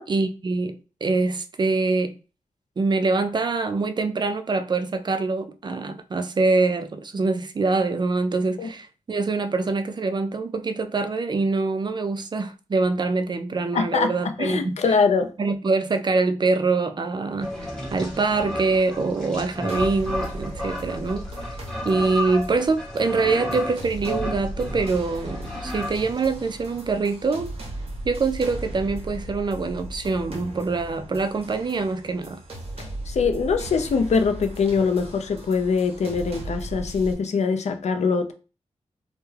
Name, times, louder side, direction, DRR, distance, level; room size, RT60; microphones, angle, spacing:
voice 1, 0.1-2.2 2.8-14.8 15.4-21.4 21.8-27.5 28.1-32.4, right 3 dB, 35° right, 0.3 m, -24 dB
voice 2, 13.7-15.3 32.8-38.3, left 5 dB, 60° left, 0.4 m, -23 dB
sound 1, 17.4-26.8, left 1 dB, 5° left, 0.9 m, -33 dB
sound 2, 19.7-37.1, right 1 dB, 50° right, 0.7 m, -37 dB
2.3 x 2.1 x 3.1 m
wide cardioid pair, 85°, 13 cm